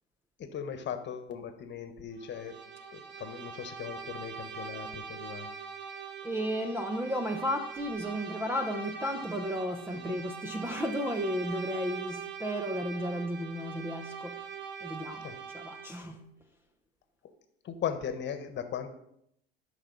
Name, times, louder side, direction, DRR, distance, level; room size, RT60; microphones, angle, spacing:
voice 1, 0.4-2.5 2.9-5.5 10.1-10.2 15.2-15.3 17.6-18.9, left 8 dB, 35° left, 1.4 m, -38 dB
Bowed string instrument, 2.2-16.1, right 6 dB, 35° right, 1.5 m, -42 dB
voice 2, 6.2-14.4 14.8-16.3, equal, 5° right, 0.8 m, -34 dB
13.0 x 6.0 x 4.1 m
hypercardioid pair, 95°, 32 cm